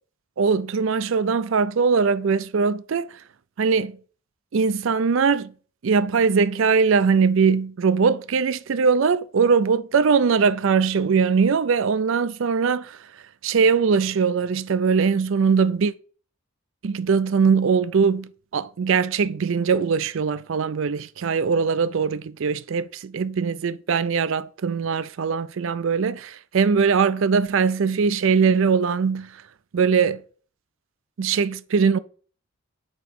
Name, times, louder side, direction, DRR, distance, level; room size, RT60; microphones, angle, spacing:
voice 1, 0.4-3.1 3.6-3.9 4.5-5.5 5.8-13.0 13.4-15.9 16.8-29.3 29.7-30.2 31.2-32.0, right 5 dB, 65° right, 0.4 m, -21 dB
5.2 x 4.8 x 5.9 m
head